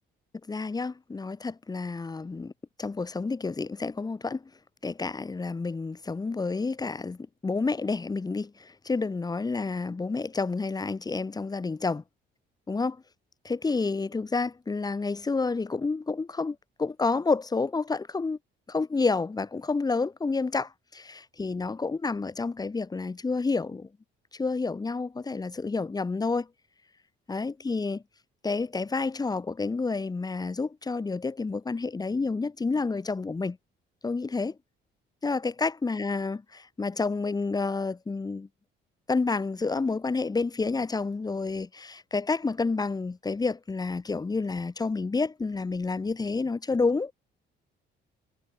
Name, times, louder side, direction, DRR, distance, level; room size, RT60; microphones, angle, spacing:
voice 1, 0.5-2.5 2.8-4.4 4.8-12.0 12.7-13.0 13.4-18.4 18.7-23.9 24.3-26.5 27.3-28.0 28.4-33.6 34.0-34.5 35.2-38.5 39.1-47.1, left 4 dB, 20° left, 0.9 m, -29 dB
cardioid pair, 90°, 21 cm